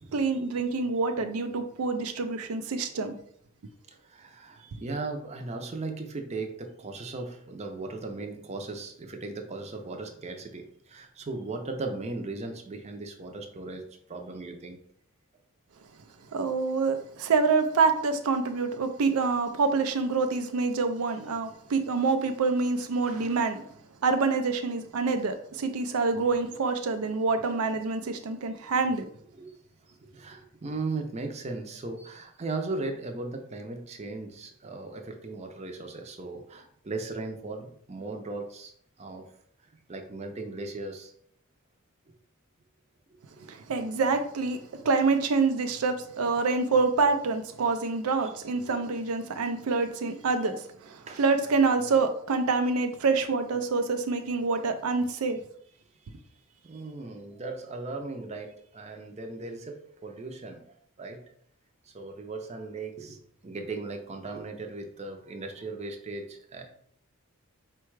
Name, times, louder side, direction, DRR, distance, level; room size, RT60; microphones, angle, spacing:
voice 1, 0.1-3.2 16.3-23.6 24.0-29.1 43.5-55.4, right 4 dB, 80° right, 8 dB, 0.4 m, -26 dB
voice 2, 3.9-14.8 29.4-29.6 30.1-38.7 39.0-39.2 39.9-41.1 43.1-43.4 51.1-51.2 56.6-60.6 61.0-61.2 61.9-63.2 63.4-66.6, right 3 dB, 30° right, 4 dB, 0.5 m, -37 dB
4.5 x 2.3 x 4.6 m, 0.65 s
head